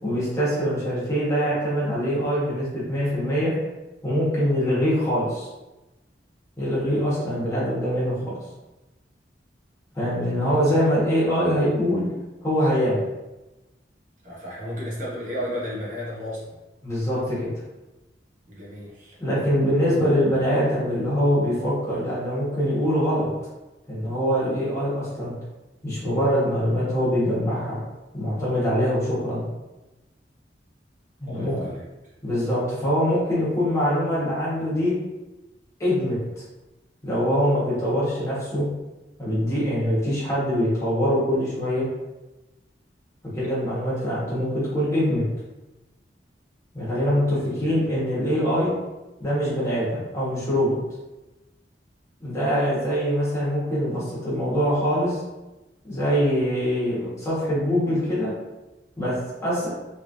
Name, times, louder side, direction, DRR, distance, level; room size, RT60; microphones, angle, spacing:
voice 1, 0.0-3.5 4.0-5.5 6.6-8.3 9.9-12.0 12.4-13.0 16.8-17.5 19.2-23.3 23.9-25.3 25.8-27.8 28.1-29.4 31.2-31.7 32.2-34.9 35.8-36.2 37.0-38.6 39.2-41.9 43.4-45.2 46.7-48.7 49.2-50.8 52.2-55.2 55.8-58.3 59.0-59.2 59.4-59.7, equal, 15° left, -9 dB, 1.3 m, -23 dB
voice 2, 10.2-10.8 14.2-16.6 18.4-19.2 31.3-32.1 47.2-47.8, equal, 45° right, -6 dB, 0.9 m, -34 dB
3.2 x 3.1 x 2.6 m, 1.1 s
head